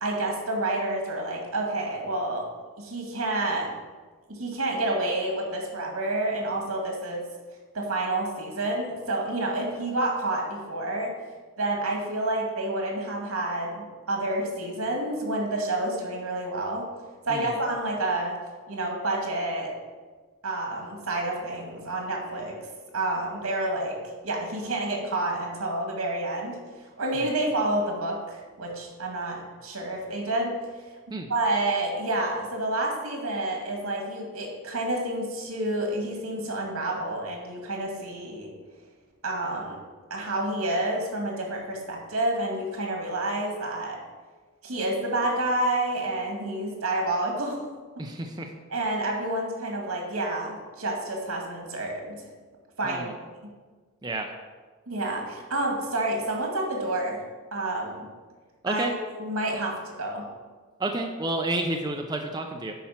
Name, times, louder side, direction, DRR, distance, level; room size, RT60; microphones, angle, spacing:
voice 1, 0.0-2.5 2.8-3.8 4.3-7.2 7.7-11.1 11.6-16.9 17.3-18.4 18.7-19.7 20.4-22.6 22.9-24.0 24.2-30.6 31.1-38.5 39.2-39.8 40.1-44.0 44.6-47.7 48.0-48.1 48.7-52.2 52.8-53.2 54.9-58.1 58.7-60.3, right 2 dB, 80° right, 1 dB, 2.1 m, -29 dB
voice 2, 48.0-48.5 52.8-53.1 54.0-54.3 58.6-58.9 60.8-62.7, right 2 dB, 20° right, 3 dB, 0.5 m, -30 dB
10.0 x 4.4 x 5.8 m, 1.4 s
head